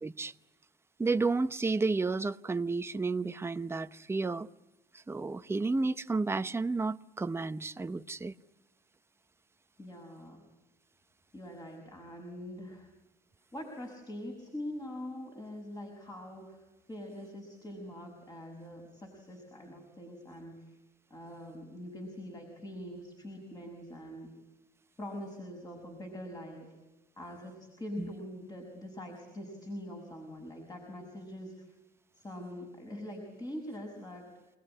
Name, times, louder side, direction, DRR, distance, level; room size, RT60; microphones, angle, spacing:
voice 1, 0.0-0.3 1.0-4.5 5.1-8.3 28.0-28.1, right 3 dB, 15° right, 0.8 m, -31 dB
voice 2, 9.8-10.4 11.3-12.9 13.5-20.8 21.1-24.3 25.0-26.7 27.2-31.6 32.2-34.3, left 1 dB, 20° left, 6.0 m, -43 dB
29.0 x 19.0 x 9.9 m
cardioid pair, 110°, 17 cm